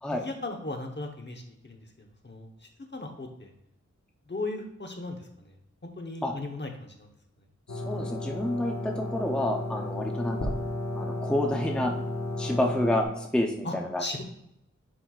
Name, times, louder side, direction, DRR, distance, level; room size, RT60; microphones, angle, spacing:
voice 1, 0.1-1.8 2.2-2.5 2.9-3.5 4.3-5.5 6.0-6.9 13.6-14.2, left 2 dB, 35° left, 3 dB, 1.0 m, -36 dB
sound 1, 7.7-13.0, left 2 dB, 65° left, 1.5 m, -33 dB
voice 2, 7.7-10.5 10.9-11.9 12.4-14.2, left 1 dB, 5° left, 1 dB, 0.6 m, -29 dB
10.0 x 4.3 x 2.4 m, 0.79 s
wide cardioid pair, 85°, 30 cm